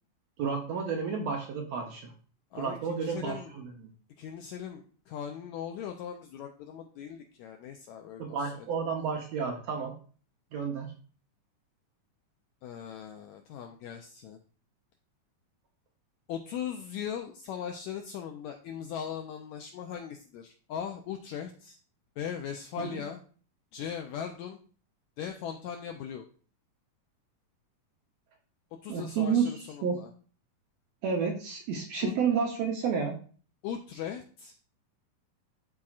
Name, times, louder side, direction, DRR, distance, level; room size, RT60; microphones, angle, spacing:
voice 1, 0.4-2.1 2.6-3.7 8.2-9.9 10.5-10.9 22.8-23.0 28.9-29.5 29.8-30.0 31.0-33.1, right 6 dB, 70° right, 1 dB, 1.7 m, -30 dB
voice 2, 2.5-3.5 4.2-8.7 12.6-14.4 16.3-21.8 22.2-23.2 23.7-24.6 25.2-26.2 28.8-30.1 32.0-32.1 33.6-34.6, left 8 dB, 90° left, 4 dB, 1.6 m, -39 dB
12.0 x 4.2 x 2.4 m, 0.41 s
omnidirectional pair, 3.9 m